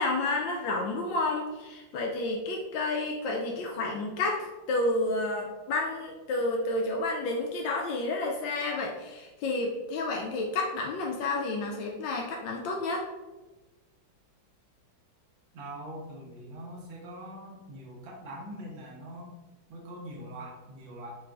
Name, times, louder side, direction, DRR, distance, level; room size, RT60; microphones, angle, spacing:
voice 1, 0.0-13.0, left 2 dB, 75° left, 0 dB, 1.2 m, -30 dB
voice 2, 15.5-19.3 19.7-21.1, right 1 dB, 80° right, -2 dB, 1.7 m, -43 dB
5.8 x 3.0 x 2.4 m, 1.2 s
omnidirectional pair, 2.1 m